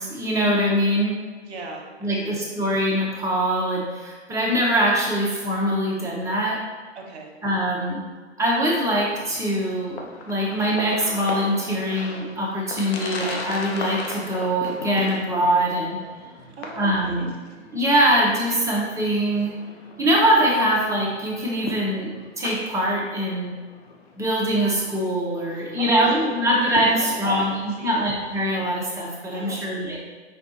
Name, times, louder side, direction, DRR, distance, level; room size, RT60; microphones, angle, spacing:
voice 1, 0.1-1.2 2.0-6.6 7.4-8.0 8.4-16.0 16.8-17.3 17.7-19.5 20.0-22.1 22.4-23.6 24.2-30.0, equal, 10° right, -4 dB, 0.8 m, -23 dB
voice 2, 1.4-2.4 6.9-7.3 16.6-17.3 25.5-26.4 26.8-28.1 29.3-30.0, right 3 dB, 65° right, 0 dB, 1.2 m, -39 dB
sound 1, 8.9-28.7, left 3 dB, 60° left, 0.8 m, -39 dB
5.4 x 3.5 x 2.8 m, 1.4 s
hypercardioid pair, 120°, 35 cm